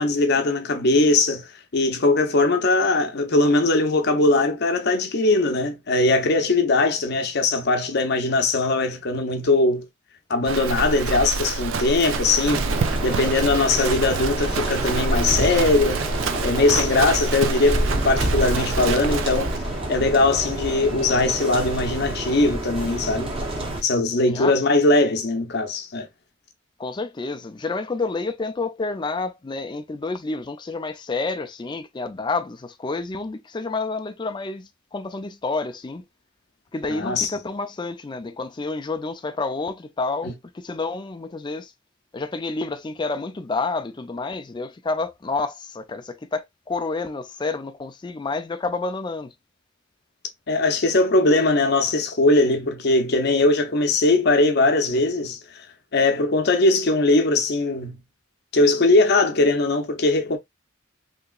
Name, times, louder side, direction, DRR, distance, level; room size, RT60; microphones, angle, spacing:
voice 1, 0.0-9.8 10.3-12.7 13.0-16.1 16.4-19.5 19.9-23.3 23.8-26.1 36.9-37.3 40.2-40.3 50.5-55.4 55.9-58.0 58.5-60.4, left 2 dB, 55° left, 0.7 m, -20 dB
Livestock farm animals working animals, 10.5-19.6, right 4 dB, 70° right, 0.4 m, -28 dB
sound 1, 12.5-23.8, right 1 dB, 30° right, 0.8 m, -28 dB
sound 2, 12.7-21.8, left 1 dB, ahead, 0.8 m, -43 dB
voice 2, 26.8-36.0 36.7-41.7 42.1-49.3, left 3 dB, 25° left, 0.4 m, -29 dB
3.4 x 2.9 x 2.3 m
head